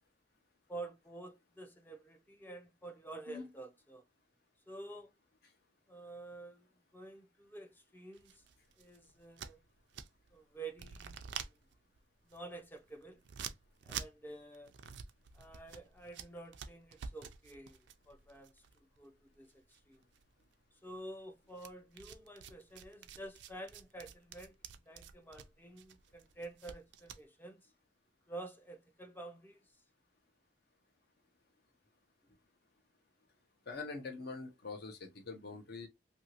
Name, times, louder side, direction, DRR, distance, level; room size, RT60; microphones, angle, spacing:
voice 1, 0.7-4.0 4.7-5.1 5.9-6.7 6.9-8.4 8.8-9.6 10.3-11.6 12.3-13.2 13.8-14.7 15.3-17.8 18.1-20.0 20.8-27.7 28.3-29.6, right 2 dB, 10° left, 0.4 m, -49 dB
sound 1, 8.1-10.4 10.7-19.5 19.7-20.5 21.6-27.2, right 7 dB, 70° right, 0.4 m, -48 dB
voice 2, 33.7-35.9, left 4 dB, 60° left, 0.7 m, -44 dB
2.8 x 2.6 x 2.8 m
head